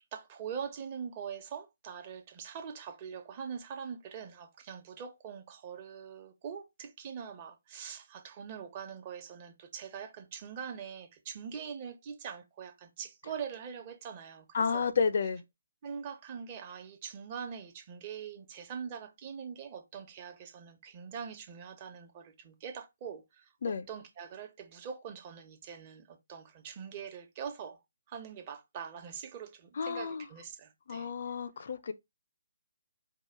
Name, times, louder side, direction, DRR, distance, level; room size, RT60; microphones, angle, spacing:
voice 1, 0.1-14.9 15.8-27.8 28.1-31.1, right 7 dB, 30° right, 1.0 m, -43 dB
voice 2, 14.5-15.4 23.6-23.9 29.8-30.2 30.9-31.9, left 6 dB, 50° left, 0.5 m, -31 dB
4.7 x 2.4 x 4.6 m
figure-of-eight pair, 140°, 0 cm